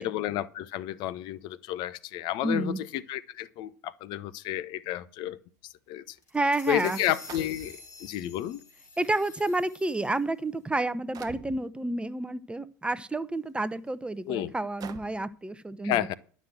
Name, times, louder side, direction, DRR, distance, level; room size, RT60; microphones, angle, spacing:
voice 1, 0.0-5.4 5.6-6.2 6.7-8.6 14.3-14.5 15.8-16.1, left 13 dB, 55° left, 0.7 m, -31 dB
voice 2, 2.4-2.8 6.3-7.0 9.0-16.1, right 2 dB, 10° right, 0.7 m, -30 dB
sound 1, 6.2-10.2, left 4 dB, 75° left, 3.9 m, -48 dB
sound 2, 6.2-6.3 7.3-8.1 9.0-9.1 9.9-10.1 11.1-11.6 12.9-13.1 13.7-13.8 14.8-15.3, right 7 dB, 45° right, 1.0 m, -45 dB
11.0 x 6.3 x 7.9 m
hypercardioid pair, 70°, 9 cm